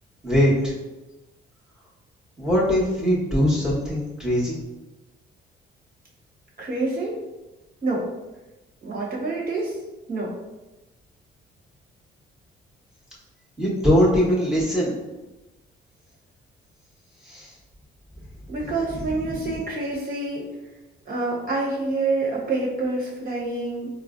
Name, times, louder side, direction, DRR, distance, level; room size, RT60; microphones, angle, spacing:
voice 1, 0.2-0.7 2.4-4.5 13.6-14.9 17.2-17.5 19.3-19.5, equal, 5° right, -6 dB, 1.2 m, -21 dB
voice 2, 6.6-7.2 7.8-8.1 8.8-9.8 10.1-10.3 18.5-20.5 21.0-23.9, right 2 dB, 45° right, -5 dB, 1.2 m, -27 dB
4.1 x 2.1 x 2.5 m, 1.1 s
cardioid pair, 90°, 20 cm